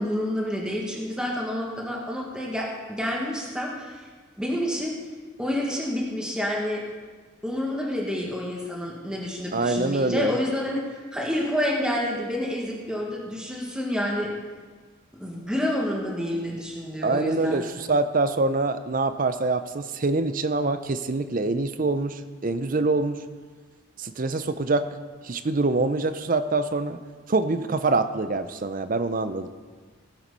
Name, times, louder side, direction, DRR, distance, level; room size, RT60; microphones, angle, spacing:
voice 1, 0.0-4.0 4.4-4.9 5.4-6.8 7.4-10.8 11.1-14.3 15.2-17.6, left 1 dB, 5° right, -3 dB, 1.6 m, -28 dB
voice 2, 9.5-10.3 17.0-23.2 24.0-24.9 25.2-27.0 27.3-29.5, right 3 dB, 40° right, 11 dB, 0.6 m, -25 dB
17.0 x 7.5 x 5.4 m, 1.5 s
head